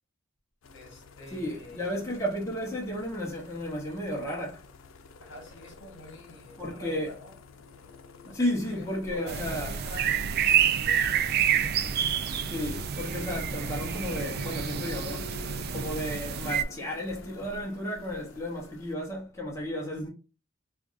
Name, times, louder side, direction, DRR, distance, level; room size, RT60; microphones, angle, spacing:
sound 1, 0.6-19.0, left 3 dB, 85° left, 0.5 m, -49 dB
voice 1, 0.7-1.9 5.2-7.4 8.3-11.7 19.8-20.0, left 1 dB, 65° left, 1.2 m, -47 dB
voice 2, 1.3-4.6 6.6-7.1 8.2-9.7 12.5-15.3 15.7-20.1, equal, 15° left, 0.8 m, -33 dB
sound 2, 9.3-16.6, right 8 dB, 50° right, 0.3 m, -28 dB
4.6 x 2.4 x 2.4 m
head